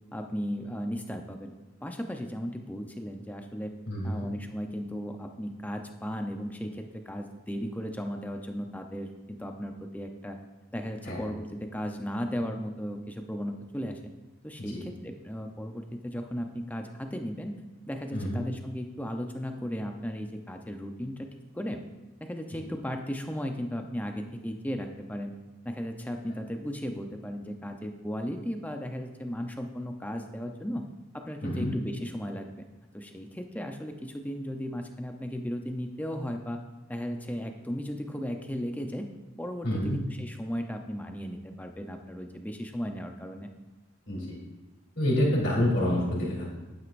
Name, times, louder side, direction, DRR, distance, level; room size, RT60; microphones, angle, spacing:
voice 1, 0.1-1.5 1.8-3.7 4.0-10.4 10.7-14.0 14.4-17.5 17.9-21.8 22.2-25.3 25.6-30.9 31.1-32.6 32.9-36.6 36.9-39.1 39.4-43.5, equal, 5° left, 4 dB, 0.6 m, -36 dB
voice 2, 3.9-4.3 11.0-11.2 14.7-14.8 18.1-18.4 31.4-31.7 39.6-40.0 44.1-44.4 44.9-46.5, left 1 dB, 55° left, -4 dB, 3.3 m, -27 dB
11.0 x 9.2 x 2.6 m, 1.2 s
head